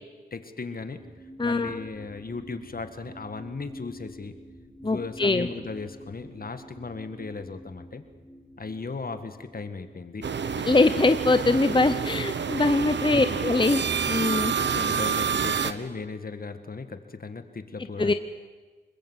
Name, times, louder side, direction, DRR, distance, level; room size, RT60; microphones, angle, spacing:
voice 1, 0.3-1.0 1.4-4.3 4.8-8.0 8.6-10.3 13.1-13.4 14.6-18.1, left 4 dB, 55° left, 9 dB, 1.9 m, -36 dB
sound 1, 0.8-10.8 11.4-11.5, equal, ahead, 4.3 m, -48 dB
voice 2, 1.4-1.8 4.8-5.5 10.6-14.5 18.0-18.1, left 3 dB, 25° left, 10 dB, 0.8 m, -23 dB
sound 2, 10.2-15.7, right 6 dB, 85° right, 1.1 m, -28 dB
26.0 x 21.0 x 8.2 m, 1.4 s
wide cardioid pair, 75°, 18 cm